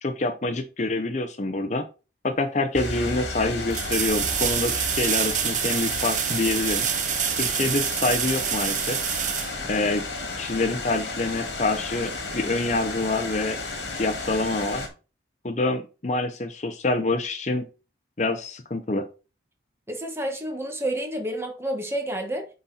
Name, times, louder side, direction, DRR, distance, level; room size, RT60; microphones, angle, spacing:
voice 1, 0.0-1.9 2.2-6.9 7.4-9.0 9.7-10.0 10.4-13.6 14.0-14.8 15.4-17.7 18.2-19.1, left 2 dB, 40° left, 0.6 m, -26 dB
sound 1, 2.3-2.4 3.7-10.3 13.2-13.3, right 10 dB, 40° right, 0.7 m, -27 dB
sound 2, 2.7-14.9, left 3 dB, 65° left, 2.0 m, -33 dB
voice 2, 19.9-22.5, right 1 dB, 15° right, 1.4 m, -29 dB
9.3 x 4.2 x 4.1 m
head